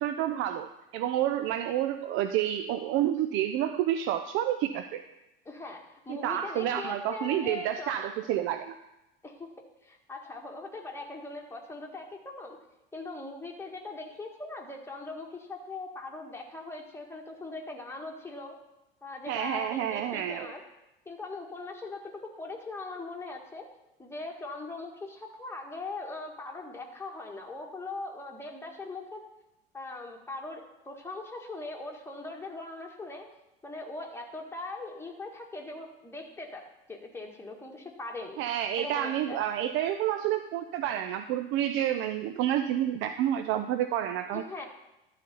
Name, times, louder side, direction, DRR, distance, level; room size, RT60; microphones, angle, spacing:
voice 1, 0.0-5.0 6.1-8.7 19.3-20.5 38.4-44.4, right 11 dB, 45° right, 10 dB, 0.5 m, -29 dB
voice 2, 5.5-8.1 9.2-9.5 9.8-12.6 12.9-18.6 19.0-20.6 21.1-23.7 24.0-29.2 29.7-33.3 33.6-36.6 36.9-38.4 38.8-39.4 44.3-44.7, left 3 dB, 10° left, 1 dB, 1.7 m, -40 dB
12.0 x 4.1 x 6.9 m, 0.93 s
figure-of-eight pair, 70°, 29 cm